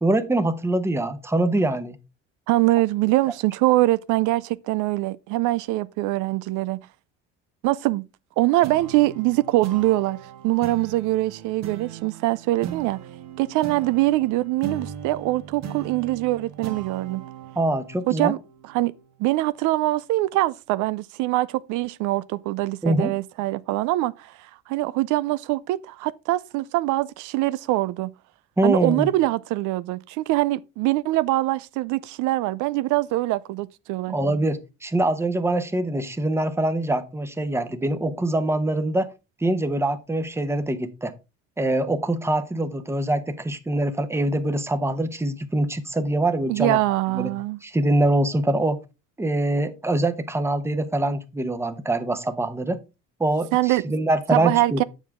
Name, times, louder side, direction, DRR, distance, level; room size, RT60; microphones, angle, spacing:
voice 1, 0.0-2.0 17.6-18.3 22.8-23.1 28.6-29.1 34.1-39.1 39.4-41.1 41.6-46.8 47.1-47.3 47.6-48.8 49.2-52.8 53.2-54.8, right 1 dB, 10° right, 0.9 m, -24 dB
voice 2, 2.5-6.8 7.6-8.0 8.4-10.2 10.4-13.0 13.4-17.2 18.1-18.4 18.6-18.9 19.2-28.1 28.6-34.1 46.5-47.6 53.5-53.8 54.3-54.8, right 18 dB, 75° right, 0.5 m, -23 dB
sound 1, 8.6-19.5, right 9 dB, 60° right, 1.6 m, -39 dB
7.3 x 7.2 x 3.5 m
cardioid pair, 110°, 31 cm